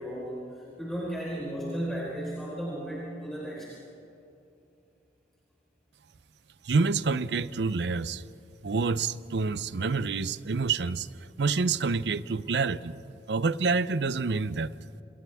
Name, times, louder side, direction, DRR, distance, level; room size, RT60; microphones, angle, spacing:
voice 1, 0.0-3.7, equal, ahead, -8 dB, 4.6 m, -35 dB
voice 2, 6.6-8.2 8.6-11.1 11.4-12.9 13.3-14.7, right 4 dB, 70° right, 16 dB, 0.6 m, -27 dB
29.5 x 27.0 x 3.5 m, 2.7 s
head